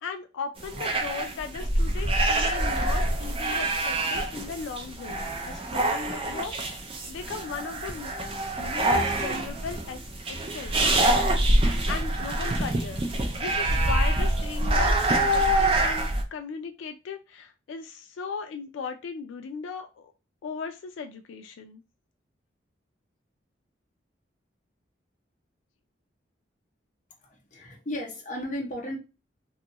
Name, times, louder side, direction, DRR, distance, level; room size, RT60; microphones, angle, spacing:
voice 1, 0.0-8.1 8.6-10.0 10.3-10.7 11.9-20.1 20.4-21.8, left 5 dB, 85° left, 0.3 m, -37 dB
sound 1, 0.6-16.2, right 1 dB, 30° right, 0.4 m, -25 dB
voice 2, 27.2-29.0, left 1 dB, 40° left, 0.7 m, -35 dB
2.6 x 2.3 x 2.9 m
head